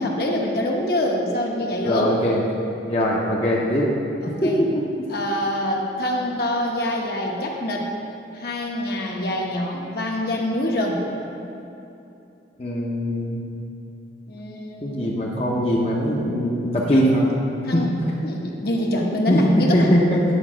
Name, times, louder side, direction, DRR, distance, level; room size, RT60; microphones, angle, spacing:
voice 1, 0.0-2.1 4.2-4.6 5.1-7.9 8.3-11.0 14.3-15.1 16.9-17.3 17.6-17.9 18.2-19.9, left 1 dB, 55° left, -1 dB, 1.0 m, -25 dB
voice 2, 1.8-2.4 2.9-3.9 4.4-4.8 12.6-13.4 14.8-17.2 17.7-17.9 19.3-19.4 19.7-20.2, equal, 35° left, -4 dB, 0.8 m, -21 dB
9.8 x 4.7 x 6.1 m, 2.8 s
head